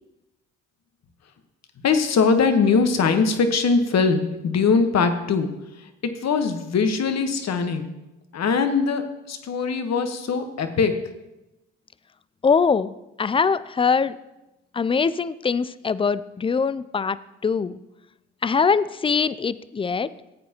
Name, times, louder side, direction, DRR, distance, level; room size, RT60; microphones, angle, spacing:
voice 1, 1.8-5.5 6.2-7.9 8.3-9.0 9.3-11.0, left 5 dB, 50° left, 8 dB, 1.3 m, -21 dB
voice 2, 12.4-14.1 14.7-17.2 17.4-17.8 18.4-20.1, left 5 dB, 15° left, 17 dB, 0.4 m, -22 dB
15.0 x 8.3 x 3.0 m, 0.98 s
hypercardioid pair, 55°, 33 cm